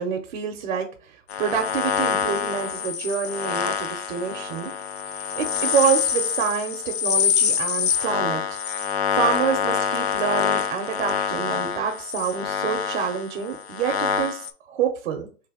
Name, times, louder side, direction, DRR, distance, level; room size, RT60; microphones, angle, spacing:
voice 1, 0.0-4.7 5.3-8.4 9.1-15.3, right 7 dB, 50° right, 3 dB, 0.8 m, -27 dB
sound 1, 1.3-14.5, left 7 dB, 55° left, 0.6 m, -26 dB
3.3 x 3.2 x 4.8 m, 0.39 s
hypercardioid pair, 160°, 39 cm